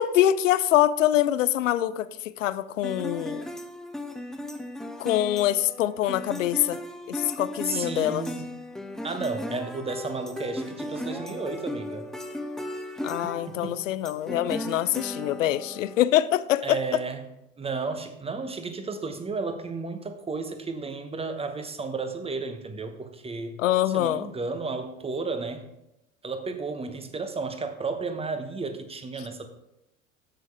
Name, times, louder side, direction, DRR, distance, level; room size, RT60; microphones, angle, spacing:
voice 1, 0.0-3.5 5.0-6.8 7.1-8.2 13.0-16.8 23.6-24.3, left 12 dB, 75° left, 16 dB, 0.5 m, -24 dB
sound 1, 2.8-16.0, left 1 dB, ahead, 0.6 m, -36 dB
voice 2, 7.6-8.5 9.0-12.1 13.2-13.8 16.6-17.3 17.6-23.6 23.9-25.7 26.2-29.5, right 4 dB, 15° right, 8 dB, 1.1 m, -33 dB
14.5 x 6.3 x 3.4 m, 0.85 s
figure-of-eight pair, 70°, 39 cm